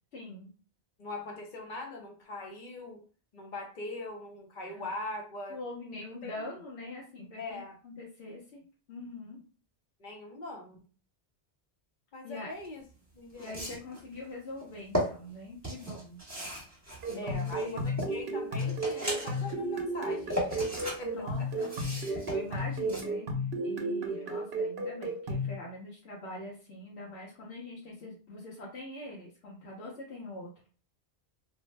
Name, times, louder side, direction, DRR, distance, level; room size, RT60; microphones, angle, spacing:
voice 1, 0.1-0.5 4.7-4.9 5.5-7.6 7.8-8.6 8.9-9.4 12.2-12.5 13.4-16.2 17.1-17.9 21.0-23.3 23.6-30.5, left 2 dB, 85° left, -3 dB, 1.1 m, -43 dB
voice 2, 1.0-3.0 3.3-5.6 6.0-6.5 7.4-7.8 10.0-10.8 12.1-12.8 13.1-13.7 17.2-20.7 21.0-21.5 24.1-24.2, left 2 dB, 55° left, 2 dB, 0.7 m, -41 dB
sound 1, 12.6-12.7 13.3-14.0 14.6-15.0 15.6-18.2 18.6-19.5 19.9-21.0 21.3-23.0, equal, 15° right, 1.0 m, -36 dB
sound 2, 17.0-25.5, right 1 dB, 70° right, 0.8 m, -33 dB
2.7 x 2.1 x 3.1 m, 0.37 s
omnidirectional pair, 1.1 m